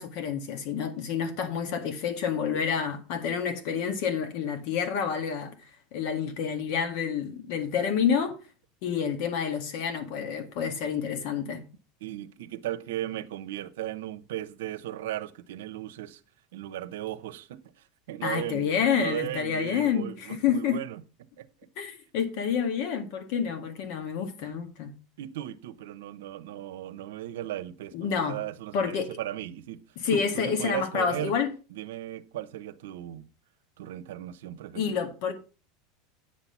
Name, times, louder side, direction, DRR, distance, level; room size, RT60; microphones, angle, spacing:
voice 1, 0.0-5.5 5.9-8.3 8.8-11.6 18.2-20.8 21.8-24.9 27.9-28.4 28.7-29.2 30.0-31.5 34.8-35.3, left 7 dB, 60° left, 1.9 m, -28 dB
voice 2, 12.0-16.2 16.5-21.0 21.4-21.5 25.2-28.0 28.3-29.8 30.1-31.3 31.7-33.2 33.8-34.9, right 13 dB, 85° right, 0.9 m, -36 dB
8.8 x 5.8 x 5.8 m
supercardioid pair, 135°, 0 cm